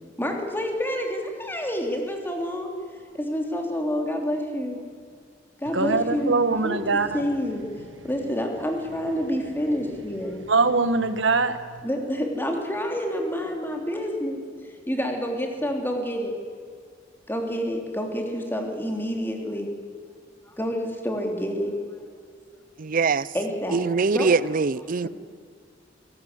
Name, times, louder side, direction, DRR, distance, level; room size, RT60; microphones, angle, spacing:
voice 1, 0.0-2.7 3.2-4.8 5.6-6.8 7.1-7.6 8.0-10.4 11.8-14.4 14.9-16.3 17.3-19.7 20.6-21.7 23.3-23.8 24.1-24.3 25.0-25.1, equal, 10° left, 3.3 m, -28 dB
voice 2, 5.7-7.2 10.5-11.8, right 4 dB, 85° right, 1.5 m, -22 dB
voice 3, 22.8-23.3 23.7-25.1, right 4 dB, 50° right, 0.6 m, -23 dB
22.0 x 18.0 x 8.2 m
head